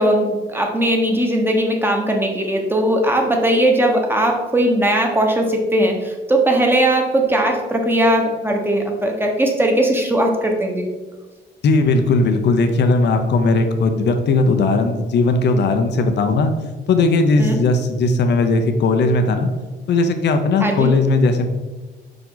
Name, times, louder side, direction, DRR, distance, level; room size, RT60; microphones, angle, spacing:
voice 1, 0.0-10.8 17.4-17.6 20.6-20.9, right 1 dB, 10° right, 1 dB, 1.2 m, -18 dB
voice 2, 11.6-16.5 16.9-19.5 19.9-21.5, left 3 dB, 60° left, 7 dB, 0.8 m, -17 dB
5.1 x 4.9 x 4.0 m, 1.2 s
cardioid pair, 90°, 20 cm